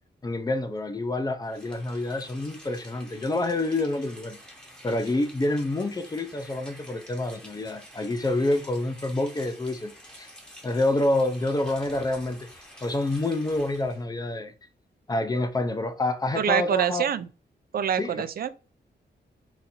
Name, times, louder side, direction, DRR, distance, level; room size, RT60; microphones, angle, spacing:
voice 1, 0.2-4.4 4.8-9.9 10.2-10.3 10.6-12.5 12.8-14.5 15.1-17.0 18.0-18.1, left 2 dB, 20° left, 0.5 m, -27 dB
Rain, 1.4-14.0, equal, 5° left, 0.8 m, -49 dB
voice 2, 16.3-17.3 17.7-18.5, right 8 dB, 55° right, 0.4 m, -25 dB
4.0 x 2.5 x 4.2 m
wide cardioid pair, 165°, 19 cm